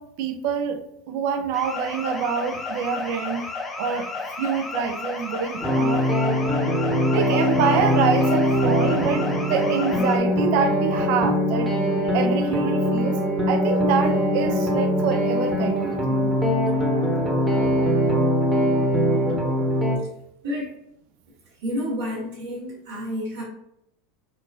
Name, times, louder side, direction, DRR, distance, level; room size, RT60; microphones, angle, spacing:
voice 1, 0.0-3.4 3.8-4.1 4.4-6.1 7.1-11.7 12.0-16.3, right 7 dB, 60° right, 0.4 m, -26 dB
sound 1, 1.5-10.2, left 3 dB, 20° left, 0.7 m, -33 dB
sound 2, 5.6-20.0, equal, 15° right, 0.9 m, -22 dB
voice 2, 20.4-20.7 21.6-23.4, equal, 85° right, 1.4 m, -29 dB
4.2 x 2.2 x 2.4 m
hypercardioid pair, 90°, 0 cm